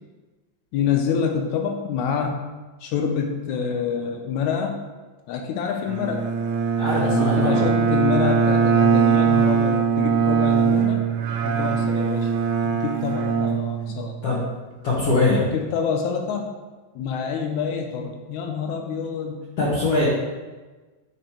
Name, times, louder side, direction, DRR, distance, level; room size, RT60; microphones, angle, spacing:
voice 1, 0.7-2.5 2.8-4.8 5.3-6.3 7.0-11.0 11.4-12.3 12.6-14.2 15.4-16.5 16.9-19.4, left 6 dB, 85° left, 4 dB, 1.7 m, -27 dB
Bowed string instrument, 5.9-14.3, right 6 dB, 75° right, 1.9 m, -21 dB
voice 2, 6.7-7.6 13.9-14.5 14.8-15.5 19.6-20.1, left 2 dB, 60° left, -7 dB, 1.8 m, -22 dB
9.0 x 5.0 x 2.9 m, 1.3 s
omnidirectional pair, 3.9 m